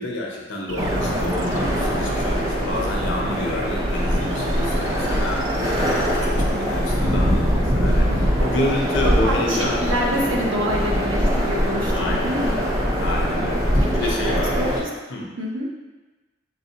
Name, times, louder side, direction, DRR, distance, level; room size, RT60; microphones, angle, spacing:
voice 1, 0.0-9.8 11.9-12.7 13.0-14.8 15.1-15.3, left 1 dB, 75° left, -1 dB, 0.7 m, -29 dB
sound 1, 0.7-7.1, right 3 dB, 65° right, 0.3 m, -34 dB
sound 2, 0.8-14.8, equal, 15° right, 0.6 m, -22 dB
voice 2, 6.5-7.0 7.9-8.2 9.2-12.6 14.0-14.1 14.5-14.9 15.4-15.7, equal, 85° right, -2 dB, 0.8 m, -27 dB
4.0 x 3.5 x 2.8 m, 1.2 s
head